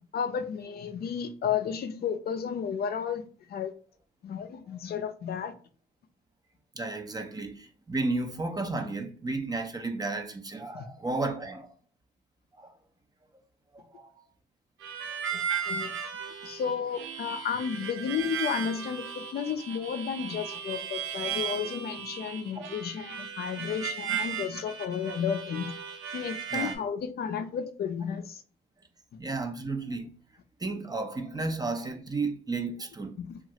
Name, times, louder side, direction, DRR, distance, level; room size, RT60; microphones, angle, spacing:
voice 1, 0.1-3.2 3.5-3.7 4.2-5.5 10.7-10.8 15.3-15.4 15.7-15.9 16.4-25.7 26.1-28.4 33.2-33.4, left 7 dB, 55° left, 0.4 m, -32 dB
voice 2, 6.8-11.7 12.6-12.7 13.7-14.1 22.6-22.7 26.5-26.7 29.2-30.1 30.6-33.1, right 3 dB, 20° right, 0.4 m, -33 dB
Harmonica, 14.8-26.8, right 8 dB, 80° right, 0.5 m, -36 dB
2.9 x 2.4 x 2.7 m
cardioid pair, 90°, 20 cm